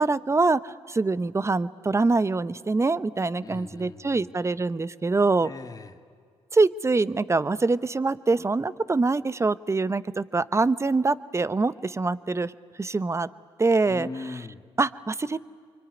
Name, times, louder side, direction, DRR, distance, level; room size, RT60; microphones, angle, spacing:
voice 1, 0.0-5.5 6.5-12.5 12.8-13.3 13.6-14.1 14.8-15.4, right 3 dB, 25° right, 17 dB, 0.9 m, -24 dB
voice 2, 3.4-4.3 5.4-6.0 13.8-14.6, left 3 dB, 35° left, 6 dB, 1.9 m, -39 dB
25.0 x 24.0 x 9.7 m, 2.1 s
supercardioid pair, 50°, 11 cm